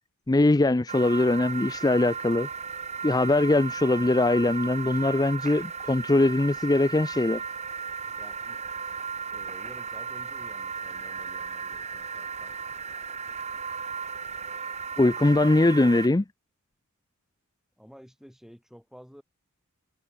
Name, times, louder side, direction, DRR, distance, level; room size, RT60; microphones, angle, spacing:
voice 1, 0.3-2.5 3.0-7.4 15.0-16.2, left 2 dB, 15° left, 0.4 m, -22 dB
sound 1, 0.9-16.1, right 6 dB, 30° right, 3.2 m, -36 dB
voice 2, 8.0-8.6 9.3-12.6 17.8-19.2, equal, ahead, 7.4 m, -51 dB
head